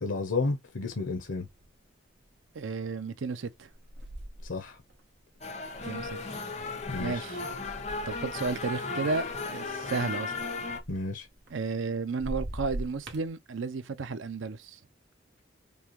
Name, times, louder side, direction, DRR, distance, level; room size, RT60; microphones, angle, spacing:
voice 1, 0.0-1.5 4.4-4.8 6.9-7.2 10.9-11.3, left 3 dB, 90° left, 0.8 m, -32 dB
sound 1, 1.3-1.8 2.3-2.6 3.5-8.7 9.0-11.9 12.1-13.3, right 1 dB, 60° right, 1.0 m, -42 dB
voice 2, 2.5-3.7 5.8-6.2 7.0-7.4 8.1-10.3 11.5-14.8, right 4 dB, 85° right, 0.5 m, -33 dB
sound 2, 5.4-10.8, left 3 dB, 35° left, 0.9 m, -35 dB
5.3 x 2.2 x 3.0 m
head